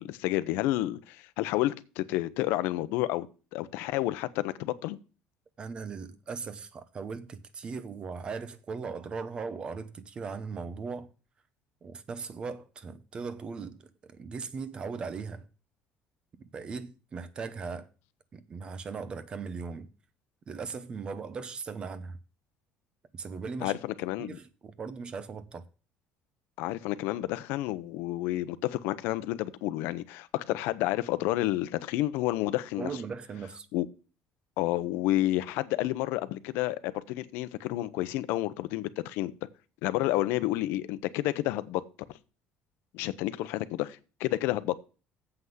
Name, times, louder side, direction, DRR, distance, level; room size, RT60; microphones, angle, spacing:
voice 1, 0.0-3.3 3.5-5.0 23.6-24.4 26.6-32.9 33.7-33.9 34.6-39.3 39.8-41.8 42.9-44.7, left 16 dB, 85° left, 0.7 m, -30 dB
voice 2, 5.6-11.1 11.8-15.5 16.4-17.9 18.3-19.9 20.5-22.2 23.1-23.8 24.2-25.6 32.8-33.7, right 5 dB, 30° right, 0.8 m, -38 dB
7.9 x 5.7 x 7.8 m
cardioid pair, 155°, 3 cm